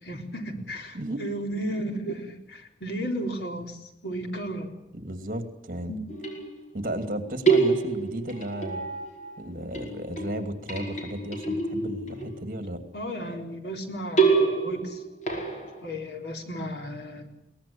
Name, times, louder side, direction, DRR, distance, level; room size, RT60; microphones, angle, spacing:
voice 1, 0.0-4.7 5.8-6.1 12.9-15.0 15.8-17.3, equal, 70° left, 3 dB, 3.9 m, -34 dB
voice 2, 4.9-5.9 6.7-8.9 9.4-12.8, right 1 dB, 50° right, 7 dB, 2.6 m, -34 dB
sound 1, 6.1-7.0 7.5-9.5 9.7-12.7 14.2-15.8, right 4 dB, 40° left, 5.1 m, -27 dB
22.5 x 18.5 x 8.7 m, 0.80 s
head